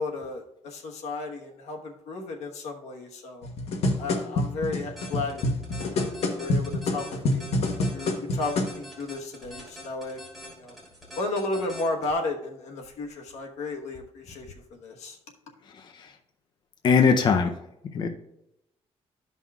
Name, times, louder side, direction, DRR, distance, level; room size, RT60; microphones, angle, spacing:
voice 1, 0.0-3.5 4.0-5.5 5.9-7.6 7.9-10.2 10.5-10.7 11.2-14.5 14.8-15.2, left 2 dB, 90° left, 2 dB, 1.2 m, -33 dB
sound 1, 3.4-8.8 9.4-9.5, left 2 dB, 70° left, 1.1 m, -27 dB
sound 2, 5.0-12.1, left 1 dB, ahead, 3.1 m, -43 dB
voice 2, 16.8-17.5 17.9-18.1, left 5 dB, 40° left, 4 dB, 0.6 m, -20 dB
13.5 x 5.5 x 2.4 m, 0.83 s
cardioid pair, 150°, 11 cm